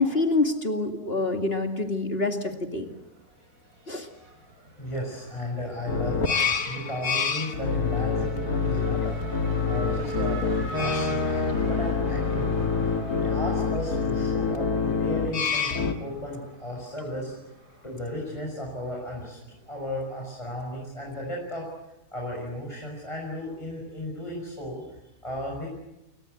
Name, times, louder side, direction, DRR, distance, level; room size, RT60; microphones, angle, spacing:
voice 1, 0.0-2.9 3.9-4.1, left 3 dB, 40° left, 5 dB, 2.6 m, -26 dB
Race car auto racing / Accelerating revving vroom, 2.7-19.7, right 1 dB, 65° right, 7.7 m, -43 dB
voice 2, 4.8-9.2 9.6-10.4 10.8-17.3 17.8-21.7 22.1-25.7, left 1 dB, 20° left, -2 dB, 6.6 m, -35 dB
sound 1, 5.9-15.9, left 5 dB, 75° left, 2.3 m, -26 dB
30.0 x 25.0 x 8.1 m, 0.91 s
omnidirectional pair, 1.6 m